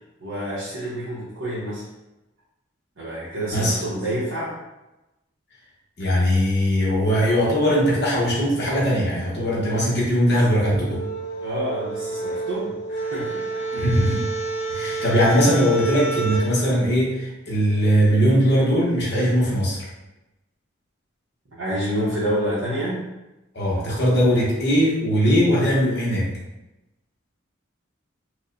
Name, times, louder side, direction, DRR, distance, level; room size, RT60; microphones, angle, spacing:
voice 1, 0.2-1.9 3.0-4.6 10.3-10.4 11.4-14.2 14.8-15.0 21.5-23.0, equal, 85° right, -9 dB, 0.9 m, -28 dB
voice 2, 6.0-11.0 13.7-14.3 14.7-19.9 23.5-26.3, equal, 55° left, -5 dB, 1.0 m, -20 dB
sound 1, 10.4-16.5, right 4 dB, 35° left, 1.3 m, -29 dB
4.6 x 2.1 x 2.6 m, 1.0 s
head